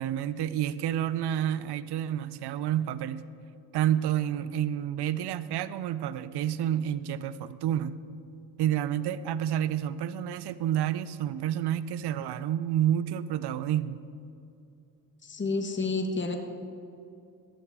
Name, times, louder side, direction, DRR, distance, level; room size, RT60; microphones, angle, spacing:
voice 1, 0.0-3.2 3.7-8.0 8.6-14.0, right 11 dB, 70° right, 16 dB, 0.6 m, -29 dB
voice 2, 15.2-16.4, left 3 dB, 25° left, 5 dB, 1.3 m, -29 dB
14.5 x 11.5 x 3.6 m, 2.6 s
supercardioid pair, 60°, 41 cm